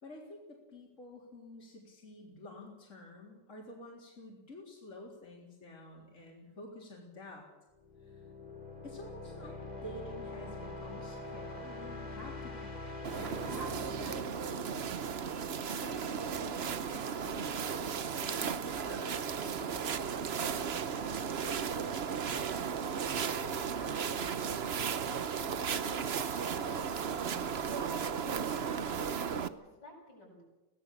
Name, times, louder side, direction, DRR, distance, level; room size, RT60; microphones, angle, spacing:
voice 1, 0.0-7.5 8.0-8.3 8.8-12.8 13.2-14.8 15.7-21.3, left 1 dB, 40° left, -3 dB, 4.0 m, -50 dB
sound 1, 7.8-15.5, left 3 dB, 20° left, 4.0 m, -44 dB
sound 2, 13.0-29.5, right 7 dB, 45° right, 0.9 m, -35 dB
sound 3, 17.5-28.0, right 1 dB, 25° right, 4.5 m, -55 dB
voice 2, 25.4-30.4, equal, 80° left, -2 dB, 8.4 m, -54 dB
23.5 x 17.5 x 7.3 m, 1.1 s
omnidirectional pair, 1.9 m